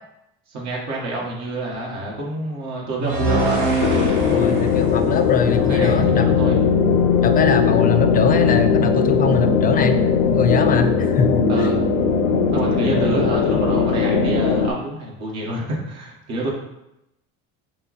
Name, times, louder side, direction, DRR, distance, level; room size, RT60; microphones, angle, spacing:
voice 1, 0.5-3.7 5.7-6.6 11.5-11.8 12.5-16.5, right 2 dB, 65° right, -3 dB, 1.6 m, -28 dB
sound 1, 3.0-6.2, right 2 dB, 80° right, 1.3 m, -27 dB
sound 2, 3.1-4.7, right 3 dB, 25° right, 1.7 m, -25 dB
sound 3, 3.8-14.7, left 6 dB, 90° left, 0.6 m, -18 dB
voice 2, 4.2-6.3 7.2-10.0 10.3-11.7 13.0-13.1, left 5 dB, 30° left, 8 dB, 0.5 m, -22 dB
5.6 x 2.2 x 4.1 m, 0.87 s
supercardioid pair, 110°, 29 cm